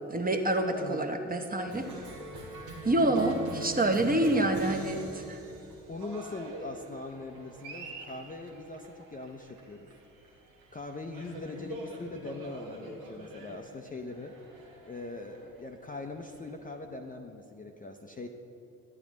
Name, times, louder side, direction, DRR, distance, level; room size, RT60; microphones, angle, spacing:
voice 1, 0.1-1.9 2.8-5.4, right 1 dB, 20° right, 4 dB, 0.9 m, -27 dB
voice 2, 0.7-1.2 5.9-9.9 10.7-14.4 14.8-18.3, left 2 dB, 20° left, 3 dB, 0.6 m, -41 dB
Cheering, 1.7-16.8, right 1 dB, 90° right, 1.0 m, -45 dB
11.5 x 8.8 x 3.1 m, 2.8 s
hypercardioid pair, 40°, 42 cm